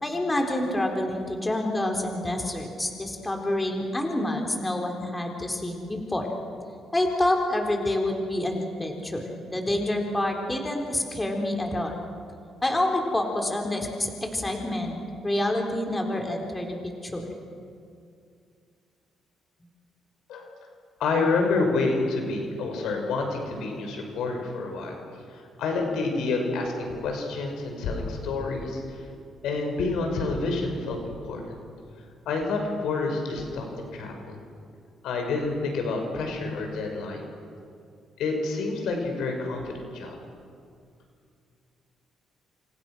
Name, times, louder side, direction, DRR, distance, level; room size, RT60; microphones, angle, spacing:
voice 1, 0.0-6.3 6.9-12.0 12.6-14.9 15.2-17.3, left 1 dB, 15° left, 2 dB, 4.1 m, -27 dB
voice 2, 21.0-25.0 25.3-29.0 29.4-31.4 32.3-34.4 35.0-37.2 38.2-40.1, left 3 dB, 85° left, 3 dB, 5.6 m, -28 dB
28.5 x 28.0 x 6.2 m, 2.3 s
cardioid pair, 90°, 0 cm